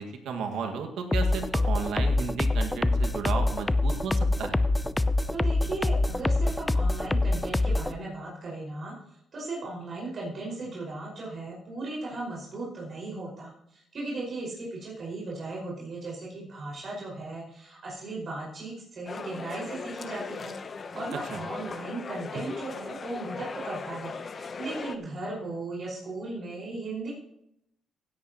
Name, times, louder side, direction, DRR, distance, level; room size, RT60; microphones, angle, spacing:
voice 1, 0.0-4.6 21.3-21.4, right 5 dB, 80° right, 4 dB, 1.9 m, -34 dB
sound 1, 1.1-7.9, left 2 dB, 15° left, 0.6 m, -25 dB
voice 2, 5.3-8.9 9.3-27.1, right 2 dB, 50° right, -4 dB, 5.4 m, -37 dB
sound 2, 19.1-25.0, left 4 dB, 40° left, 0.9 m, -38 dB
16.5 x 10.0 x 3.0 m, 0.77 s
cardioid pair, 90°, 0 cm